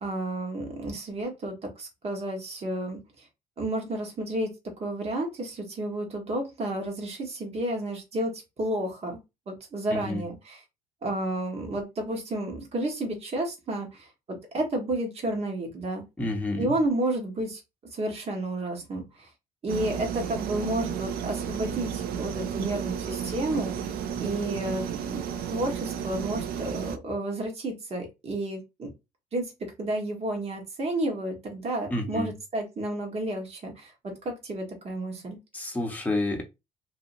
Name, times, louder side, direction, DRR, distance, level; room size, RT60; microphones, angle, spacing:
voice 1, 0.0-3.3 3.6-9.2 9.5-10.6 11.0-16.0 16.6-17.6 17.9-19.3 19.6-23.9 24.2-25.2 25.5-28.9 29.3-29.5 29.8-35.4, right 1 dB, 35° right, 1.3 m, -31 dB
voice 2, 9.9-10.2 16.2-16.7 31.9-32.3 35.5-36.4, left 2 dB, 10° left, 1.0 m, -29 dB
sound 1, 19.7-27.0, right 8 dB, 60° right, 0.5 m, -33 dB
2.7 x 2.6 x 2.6 m
cardioid pair, 110°, 17 cm